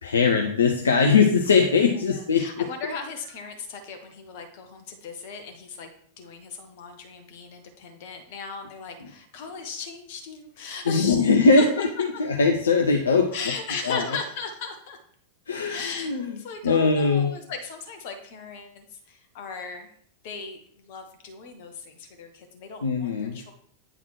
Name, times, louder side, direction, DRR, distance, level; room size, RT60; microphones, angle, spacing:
voice 1, 0.0-2.7 10.9-11.9 12.2-13.3 13.8-14.0 15.5-16.3 16.6-17.3 22.8-23.4, left 4 dB, 70° left, 3 dB, 0.7 m, -21 dB
voice 2, 2.1-5.9 6.2-11.3 11.6-11.7 12.0-12.1 13.3-15.0 15.7-19.9 20.2-23.5, left 5 dB, 50° left, 6 dB, 1.4 m, -37 dB
9.0 x 3.9 x 4.7 m, 0.63 s
figure-of-eight pair, 90°, 0 cm